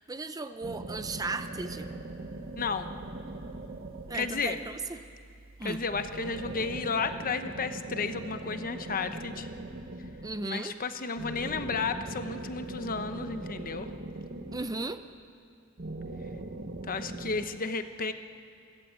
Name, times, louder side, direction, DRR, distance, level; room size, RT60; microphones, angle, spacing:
voice 1, 0.0-1.9 4.1-5.0 5.6-5.8 10.2-10.8 14.5-15.1, right 3 dB, 15° right, 10 dB, 0.6 m, -36 dB
sound 1, 0.6-4.8 5.9-10.5 11.2-15.2 15.8-17.5, right 2 dB, 45° right, 1.2 m, -41 dB
sound 2, 0.9-6.8, right 2 dB, 70° right, 2.6 m, -54 dB
voice 2, 2.6-2.9 4.1-4.6 5.6-9.5 10.4-13.9 16.9-18.1, left 4 dB, 40° left, 9 dB, 1.0 m, -33 dB
29.0 x 14.5 x 8.2 m, 2.3 s
head